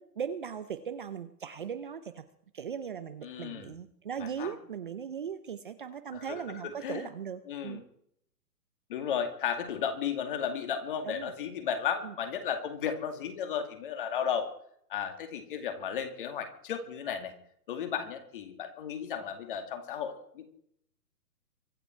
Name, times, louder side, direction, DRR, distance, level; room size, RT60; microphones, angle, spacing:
voice 1, 0.0-2.2 2.5-7.8 11.1-11.3 12.0-12.1, right 7 dB, 35° right, 10 dB, 0.8 m, -38 dB
voice 2, 3.2-3.7 4.2-4.5 6.1-7.1 7.5-7.8 8.9-14.5 14.9-17.4 17.7-20.5, left 8 dB, 35° left, 7 dB, 2.3 m, -34 dB
24.5 x 10.0 x 4.6 m, 0.67 s
hypercardioid pair, 165°, 48 cm